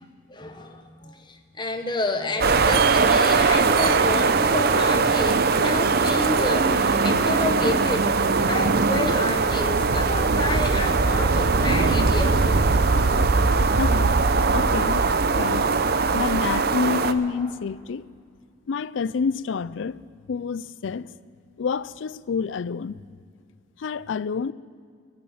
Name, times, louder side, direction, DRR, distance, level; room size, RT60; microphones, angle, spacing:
voice 1, 0.3-8.2 8.5-12.4 15.4-15.8 17.3-17.4, left 2 dB, 25° left, 1.1 m, -30 dB
sound 1, 2.4-17.1, right 4 dB, 50° right, 0.6 m, -20 dB
voice 2, 13.5-14.1 14.5-15.1 15.4-15.7 16.1-18.1 18.7-20.0 20.3-21.1 21.6-23.0 23.8-24.5, left 5 dB, 70° left, 0.4 m, -28 dB
17.5 x 8.8 x 8.7 m
head